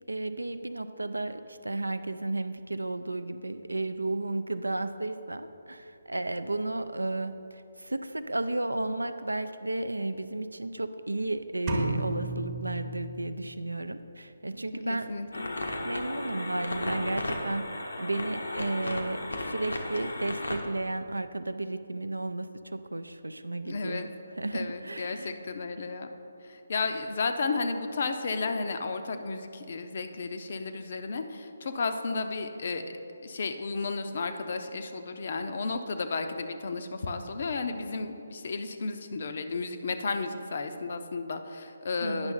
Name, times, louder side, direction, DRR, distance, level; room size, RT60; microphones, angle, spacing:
voice 1, 0.1-15.1 15.8-17.7 18.0-24.1 24.4-25.3 42.0-42.3, right 2 dB, 80° right, 11 dB, 0.4 m, -33 dB
sound 1, 11.7-13.6, right 2 dB, 30° right, 0.9 m, -33 dB
voice 2, 14.9-15.5 23.7-24.1 24.5-26.1 26.5-32.8 33.2-42.3, left 4 dB, 50° left, 7 dB, 0.5 m, -33 dB
sound 2, 15.3-20.6, left 2 dB, 75° left, 0.8 m, -34 dB
9.7 x 6.0 x 3.7 m, 2.7 s
figure-of-eight pair, 145°, 0 cm